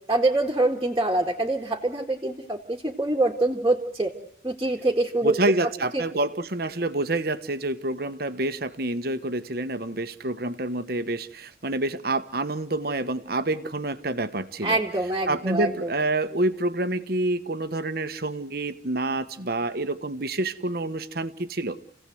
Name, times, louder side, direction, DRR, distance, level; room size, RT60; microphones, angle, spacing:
voice 1, 0.1-4.1 4.4-5.3 5.9-6.0 14.6-15.9, right 2 dB, 15° right, -1 dB, 1.9 m, -25 dB
voice 2, 5.2-14.8 15.3-21.8, right 2 dB, 50° right, 11 dB, 1.2 m, -28 dB
29.0 x 17.0 x 7.9 m, 0.76 s
head